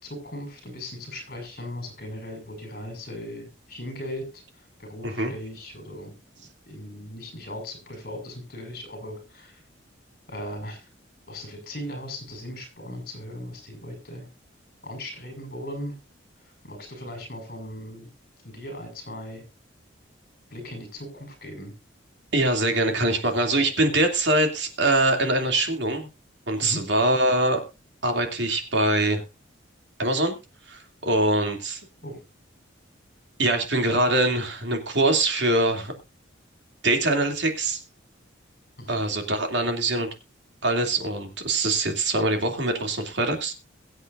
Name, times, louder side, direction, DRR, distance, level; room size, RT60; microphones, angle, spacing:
voice 1, 0.0-9.6 10.3-10.9 11.3-14.3 14.8-16.0 16.4-18.1 18.4-19.5 20.5-21.7 26.6-26.9 32.0-32.2 38.8-38.9, left 1 dB, 50° left, 5 dB, 5.7 m, -38 dB
voice 2, 22.3-26.1 26.5-27.6 28.0-29.2 30.0-30.4 30.7-31.8 33.4-35.9 36.8-37.8 38.9-40.1 40.6-43.5, right 2 dB, 65° right, 4 dB, 2.7 m, -23 dB
22.5 x 8.0 x 2.6 m, 0.26 s
head